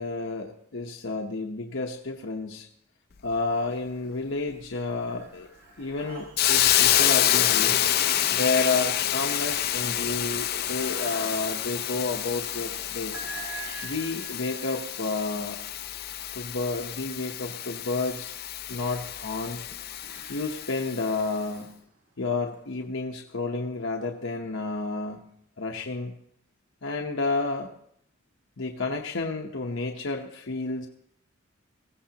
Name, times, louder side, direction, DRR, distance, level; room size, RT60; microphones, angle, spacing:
voice 1, 0.0-2.7 3.2-5.5 5.8-7.8 8.3-13.2 13.8-15.6 16.3-18.3 18.7-19.7 20.3-21.8 22.2-26.1 26.8-27.7 28.6-30.9, left 3 dB, 75° left, 1 dB, 0.9 m, -31 dB
sound 1, 3.5-4.2 4.5-17.7 18.4-22.8, right 3 dB, 70° right, 5.1 m, -48 dB
Hiss, 6.4-21.1, left 11 dB, 50° left, 0.5 m, -27 dB
20.0 x 16.0 x 2.9 m, 0.69 s
head